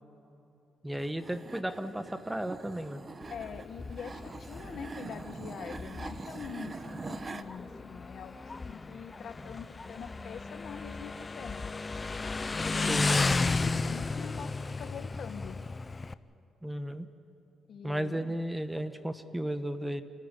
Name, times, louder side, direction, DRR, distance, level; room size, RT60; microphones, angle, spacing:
voice 1, 0.8-3.0 12.9-13.3 16.6-17.1 17.8-20.0, right 1 dB, 10° right, 10 dB, 1.1 m, -34 dB
sound 1, 1.0-7.4, right 3 dB, 30° right, 1.0 m, -44 dB
Motorcycle, 3.2-16.1, left 3 dB, 25° left, 0.6 m, -34 dB
voice 2, 3.3-11.7 12.5-15.6 17.7-18.4, left 7 dB, 60° left, 10 dB, 1.1 m, -44 dB
28.5 x 13.5 x 9.8 m, 2.9 s
cardioid pair, 90°, 0 cm